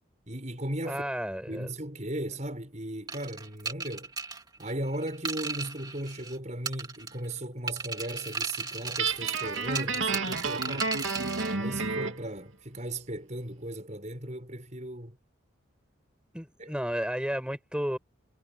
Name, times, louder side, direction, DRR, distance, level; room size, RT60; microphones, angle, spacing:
voice 1, 0.3-1.0 1.5-4.1 4.6-10.9 11.5-15.2 16.6-16.7, right 1 dB, 35° right, 6.3 m, -36 dB
voice 2, 0.8-1.7 16.3-18.0, equal, 5° right, 7.0 m, -32 dB
sound 1, 3.1-6.4 6.7-7.3 7.7-11.5, right 4 dB, 20° right, 2.9 m, -36 dB
Guitar, 9.0-12.2, right 4 dB, 80° right, 2.4 m, -30 dB
head